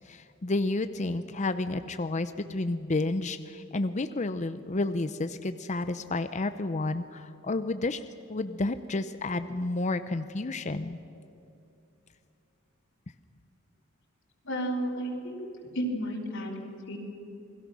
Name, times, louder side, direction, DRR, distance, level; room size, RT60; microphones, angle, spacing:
voice 1, 0.1-8.0 8.3-11.0, left 2 dB, 35° left, 11 dB, 0.6 m, -31 dB
voice 2, 14.4-15.5 15.7-17.0, right 1 dB, 60° left, -1 dB, 3.7 m, -32 dB
29.0 x 21.0 x 6.3 m, 2.7 s
head